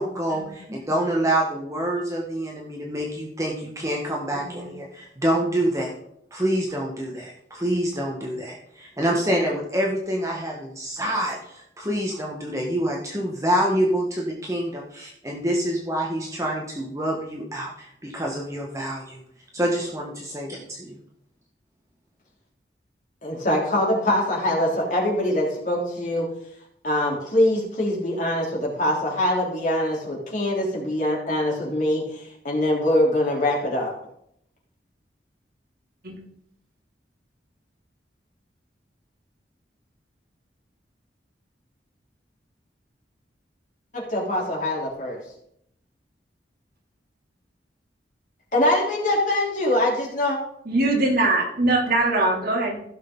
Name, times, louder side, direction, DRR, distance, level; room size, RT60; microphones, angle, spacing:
voice 1, 0.0-5.9 6.3-19.2 19.5-21.0, right 1 dB, 20° right, -1 dB, 1.4 m, -26 dB
voice 2, 4.3-4.7 36.0-36.2 50.7-52.8, right 2 dB, 60° right, -1 dB, 2.8 m, -22 dB
voice 3, 23.2-26.3 26.8-33.9 43.9-45.2 48.5-50.4, left 1 dB, 45° left, -3 dB, 3.6 m, -23 dB
15.5 x 6.5 x 3.9 m, 0.72 s
head